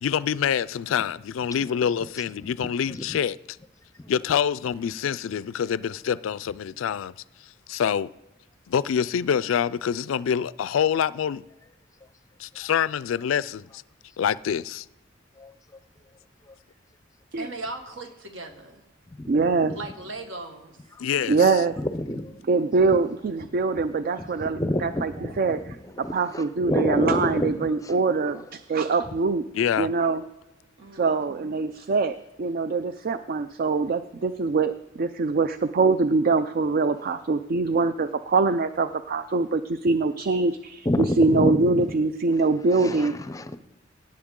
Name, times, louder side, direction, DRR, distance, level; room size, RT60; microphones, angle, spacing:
voice 1, 0.0-3.4 4.1-7.1 7.7-8.1 8.7-11.4 12.4-13.8 14.2-14.9 21.0-21.4 29.5-29.9, left 8 dB, 85° left, 0.3 m, -26 dB
voice 2, 17.4-18.8 19.7-20.8 30.8-31.7, right 2 dB, 75° right, 1.6 m, -38 dB
voice 3, 19.3-19.7 21.3-21.8 22.5-25.6 26.1-29.4 29.8-30.2 30.9-43.2, right 3 dB, 50° right, 0.4 m, -23 dB
voice 4, 21.8-22.3 24.2-25.7 26.0-27.5 27.8-27.9 28.3-28.4 40.9-41.8 42.8-43.6, left 1 dB, 15° left, 0.5 m, -28 dB
17.0 x 7.6 x 3.7 m
head